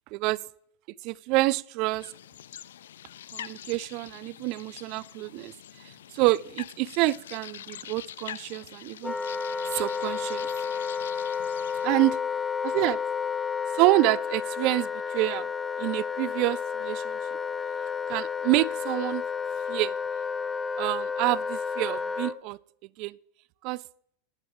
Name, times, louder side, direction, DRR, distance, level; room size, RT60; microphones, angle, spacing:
voice 1, 1.0-2.1 3.3-5.5 6.1-9.1 9.7-10.5 11.8-12.2 12.6-13.0 13.7-15.5 15.8-17.2 18.1-19.2 19.7-19.9 20.8-22.6 23.0-23.1 23.6-23.8, right 19 dB, 50° right, 23 dB, 0.4 m, -27 dB
sound 1, 2.0-11.9, left 11 dB, 85° left, 0.4 m, -44 dB
Wind instrument woodwind instrument, 9.0-22.4, left 6 dB, 15° left, 0.6 m, -31 dB
15.5 x 11.5 x 3.1 m, 0.73 s
hypercardioid pair, 115°, 0 cm